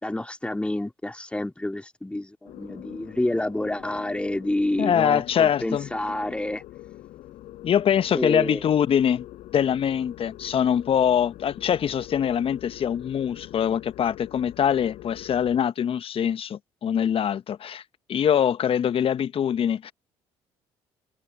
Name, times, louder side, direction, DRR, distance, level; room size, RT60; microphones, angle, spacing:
voice 1, 0.0-6.6 8.1-8.6, left 1 dB, 10° left, 2.6 m, -28 dB
sound 1, 2.4-15.6, left 15 dB, 70° left, 4.4 m, -44 dB
voice 2, 4.8-5.9 7.6-9.3 9.5-17.8 18.1-19.9, left 9 dB, 50° left, 1.2 m, -23 dB
hypercardioid pair, 55°, 12 cm